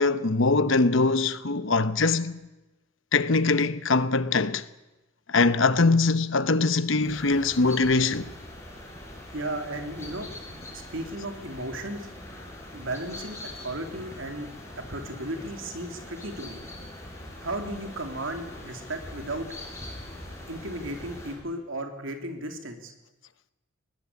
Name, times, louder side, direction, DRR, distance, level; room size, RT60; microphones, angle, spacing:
voice 1, 0.0-2.4 3.1-4.6 5.3-8.3, left 3 dB, 65° left, 1.0 m, -22 dB
sound 1, 7.0-21.3, left 1 dB, 15° left, 6.9 m, -42 dB
voice 2, 9.3-10.3 10.7-12.1 12.7-14.5 14.8-16.6 17.4-19.5 20.5-22.9, right 1 dB, 65° right, 3.0 m, -35 dB
21.0 x 18.5 x 8.4 m
head